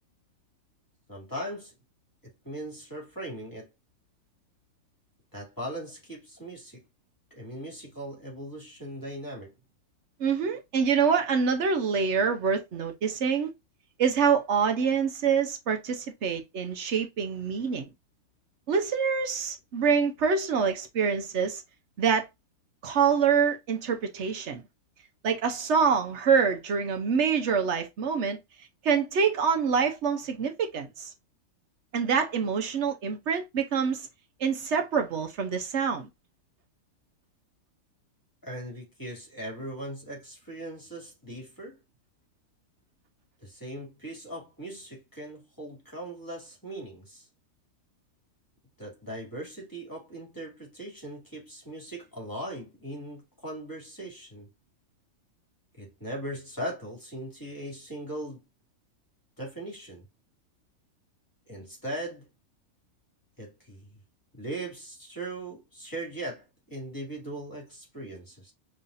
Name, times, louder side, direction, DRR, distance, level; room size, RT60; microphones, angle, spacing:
voice 1, 1.1-1.7 2.2-3.7 5.3-6.8 7.3-9.5 38.4-41.8 43.4-47.3 48.8-54.5 55.7-58.4 59.4-60.1 61.5-62.3 63.4-63.9 64.3-68.5, right 1 dB, 15° left, 2.5 m, -39 dB
voice 2, 10.2-13.5 14.0-17.9 18.7-21.6 22.0-22.3 22.8-24.6 25.2-28.4 28.8-31.1 31.9-34.1 34.4-36.1, right 6 dB, 75° right, 1.1 m, -26 dB
5.4 x 3.2 x 2.5 m
omnidirectional pair, 1.2 m